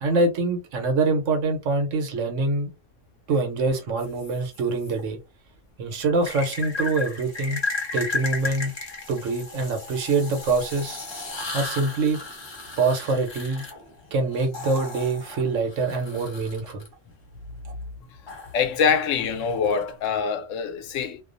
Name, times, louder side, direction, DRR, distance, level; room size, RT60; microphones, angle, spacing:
voice 1, 0.0-2.7 3.3-5.2 5.8-7.6 7.9-8.7 9.1-11.0 11.5-12.2 12.8-13.6 14.1-16.8, right 3 dB, 90° right, 1.2 m, -24 dB
sound 1, 4.0-4.9 6.2-16.9 18.3-20.1, left 3 dB, 30° left, 0.6 m, -35 dB
voice 2, 18.2-21.2, left 6 dB, 90° left, 1.0 m, -25 dB
2.4 x 2.3 x 2.5 m
omnidirectional pair, 1.3 m